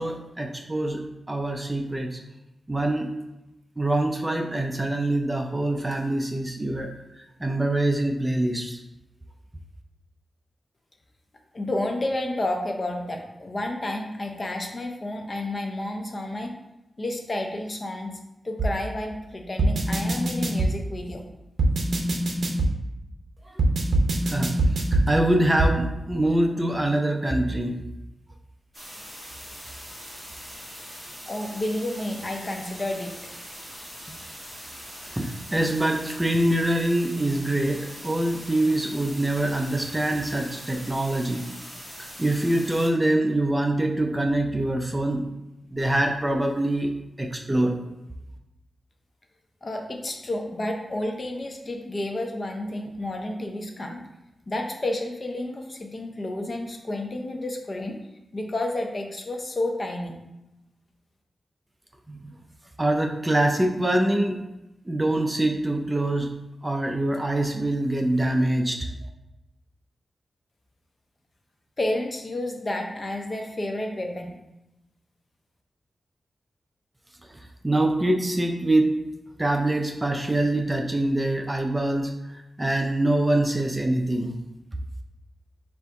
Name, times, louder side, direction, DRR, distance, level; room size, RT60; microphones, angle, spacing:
voice 1, 0.0-2.2 2.7-3.1 3.8-6.9 7.2-8.8 23.4-23.6 24.3-27.8 35.0-41.5 42.2-45.3 45.7-46.9 47.2-47.8 62.1-62.3 62.8-64.4 64.9-66.3 66.6-68.9 77.3-79.0 79.4-84.4, right 1 dB, 15° right, 3 dB, 0.4 m, -24 dB
voice 2, 11.5-16.6 17.0-18.2 18.4-21.2 31.3-33.2 33.7-34.3 49.6-54.0 54.5-58.0 58.3-60.2 71.8-74.4, left 1 dB, 35° left, 2 dB, 0.6 m, -30 dB
sound 1, 18.6-18.7 19.6-20.7 21.6-22.7 23.6-25.1 25.6-25.7, right 2 dB, 70° right, 0.6 m, -22 dB
sound 2, 28.7-42.9, equal, ahead, 1.3 m, -42 dB
3.4 x 2.6 x 4.5 m, 0.94 s
wide cardioid pair, 85°, 0 cm